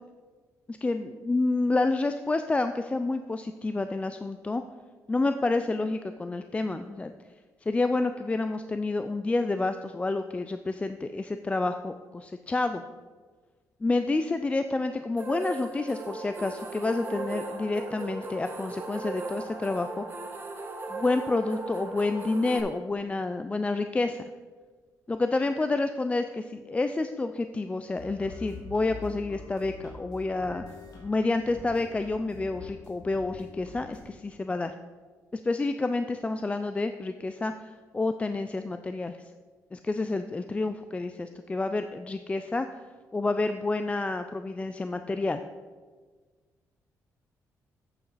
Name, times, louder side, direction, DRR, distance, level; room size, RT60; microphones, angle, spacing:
voice 1, 0.7-4.6 5.1-7.1 7.6-12.8 13.8-20.0 20.9-24.3 25.1-30.6 30.9-34.7 35.3-39.2 39.7-42.7 43.1-45.4, left 3 dB, 20° left, 9 dB, 0.4 m, -29 dB
sound 1, 15.2-22.6, right 3 dB, 35° right, 1.4 m, -37 dB
sound 2, 28.0-34.0, left 4 dB, 80° left, 2.9 m, -45 dB
8.5 x 8.2 x 4.1 m, 1.5 s
cardioid pair, 90°, 6 cm